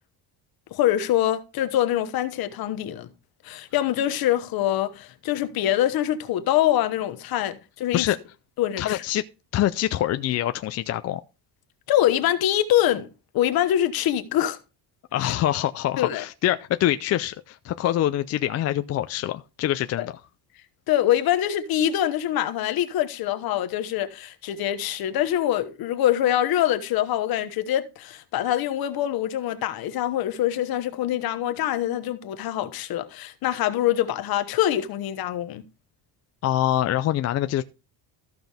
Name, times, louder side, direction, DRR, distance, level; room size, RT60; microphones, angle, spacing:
voice 1, 0.7-3.1 3.4-8.1 8.6-9.0 11.9-13.1 13.3-14.6 16.0-16.2 20.0-20.1 20.9-35.6, left 12 dB, 60° left, 1.1 m, -24 dB
voice 2, 8.8-9.2 9.5-11.2 15.1-20.1 36.4-37.6, left 13 dB, 40° left, 0.4 m, -25 dB
14.0 x 6.0 x 3.4 m
cardioid pair, 170°, 41 cm